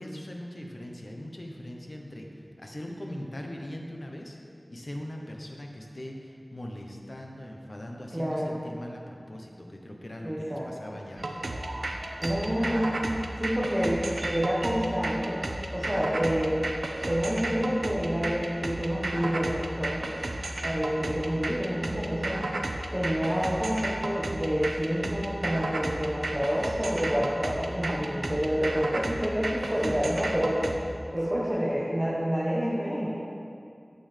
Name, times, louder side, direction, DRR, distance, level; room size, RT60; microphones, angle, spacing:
voice 1, 0.0-4.4 4.7-11.5 11.8-12.0 29.6-30.1, left 1 dB, 55° left, 1 dB, 0.9 m, -40 dB
voice 2, 8.1-8.6 10.2-10.7 12.2-13.0 13.4-15.4 15.7-16.6 17.0-20.0 20.6-22.4 22.9-30.8 31.1-33.1, equal, 15° right, -7 dB, 1.3 m, -28 dB
sound 1, 11.2-30.8, right 2 dB, 85° right, 0.5 m, -33 dB
9.0 x 7.8 x 3.4 m, 2.5 s
wide cardioid pair, 50°, 0 cm